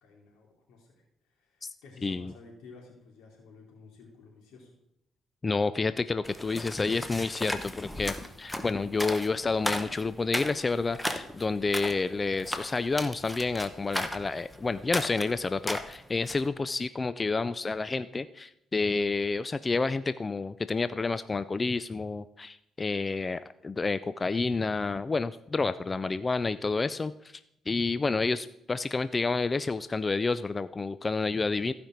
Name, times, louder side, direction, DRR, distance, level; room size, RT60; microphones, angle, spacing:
voice 1, 0.0-4.7, left 3 dB, 90° left, 0 dB, 2.8 m, -53 dB
voice 2, 2.0-2.3 5.4-27.1 27.7-31.7, left 3 dB, 25° left, 14 dB, 0.3 m, -29 dB
sound 1, 6.2-16.5, left 1 dB, 5° left, 0.8 m, -36 dB
15.0 x 5.1 x 4.5 m, 0.80 s
cardioid pair, 90°, 0 cm